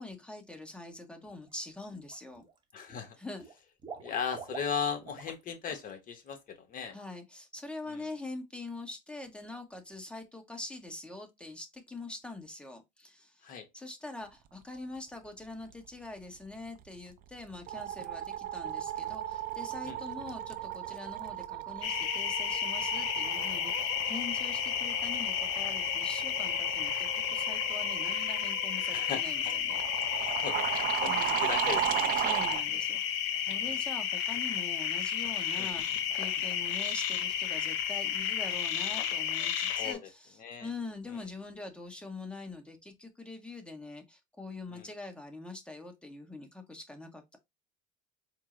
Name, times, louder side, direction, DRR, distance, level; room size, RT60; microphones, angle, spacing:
voice 1, 0.0-2.4 3.2-3.4 6.9-13.5 13.7-30.0 31.0-31.4 32.2-33.0 33.3-47.4, left 2 dB, 5° left, 0.9 m, -44 dB
Water / Liquid, 1.3-1.5 1.9-2.6 2.9-5.4 5.7-5.9 6.3-6.4, right 5 dB, 20° right, 0.8 m, -47 dB
voice 2, 2.7-3.2 4.0-7.0 7.9-8.0 13.4-13.7 19.9-20.0 28.9-29.5 30.2-31.1 31.4-32.2 32.7-32.8 33.6-33.8 35.6-35.7 39.8-40.1 40.4-40.7 41.1-41.2 44.7-44.9, left 7 dB, 40° left, 0.9 m, -37 dB
sound 1, 16.8-17.1 17.4-32.6, right 12 dB, 45° right, 0.5 m, -36 dB
sound 2, 21.8-39.9, left 9 dB, 75° left, 0.6 m, -32 dB
4.5 x 2.0 x 3.6 m
supercardioid pair, 120°, 21 cm